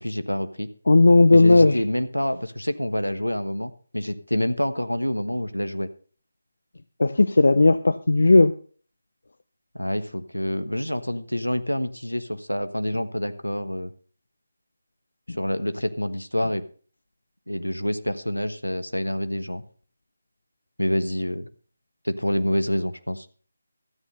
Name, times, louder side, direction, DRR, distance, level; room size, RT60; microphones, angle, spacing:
voice 1, 0.0-0.7 1.3-5.9 9.7-13.9 15.3-16.6 17.5-19.6 20.8-21.5 22.0-23.3, equal, 85° left, 1.2 m, -27 dB
voice 2, 0.9-1.8 7.0-8.5 15.3-15.4, left 2 dB, 60° left, 0.5 m, -16 dB
13.0 x 8.5 x 5.5 m
figure-of-eight pair, 155°, 0 cm